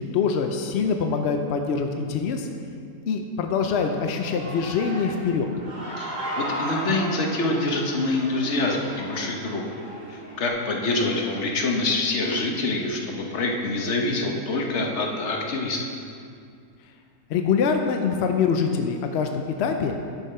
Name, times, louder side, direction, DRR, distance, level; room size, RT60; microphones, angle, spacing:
voice 1, 0.0-2.5 3.1-5.5 17.3-19.9, left 5 dB, 70° left, 5 dB, 0.6 m, -24 dB
Human voice / Cheering, 3.9-10.5, right 1 dB, 35° right, 2.0 m, -35 dB
voice 2, 6.0-9.6 10.1-15.8, left 2 dB, 50° left, 0 dB, 1.1 m, -26 dB
10.5 x 5.5 x 4.3 m, 2.3 s
omnidirectional pair, 1.7 m